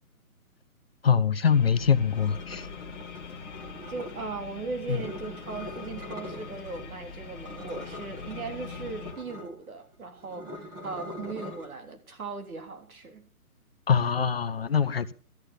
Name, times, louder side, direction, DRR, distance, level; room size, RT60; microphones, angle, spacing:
voice 1, 1.0-2.7 4.9-5.0 13.9-15.1, left 7 dB, 40° left, 0.6 m, -23 dB
sound 1, 1.4-9.1, left 5 dB, 10° left, 1.1 m, -43 dB
sound 2, 2.1-4.3 4.8-6.9 7.2-11.7, left 1 dB, 10° right, 1.4 m, -43 dB
voice 2, 3.9-13.2, right 4 dB, 70° right, 3.5 m, -38 dB
13.5 x 10.5 x 6.5 m
hypercardioid pair, 165°, 45 cm